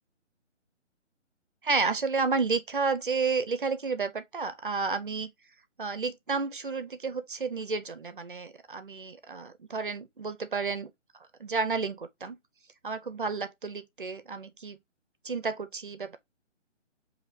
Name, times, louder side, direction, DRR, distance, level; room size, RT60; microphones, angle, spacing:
voice 1, 1.6-5.3 5.8-10.9 11.4-12.4 12.8-14.8 15.2-16.2, right 4 dB, 45° right, 0.6 m, -31 dB
5.8 x 2.8 x 2.6 m
hypercardioid pair, 170°, 37 cm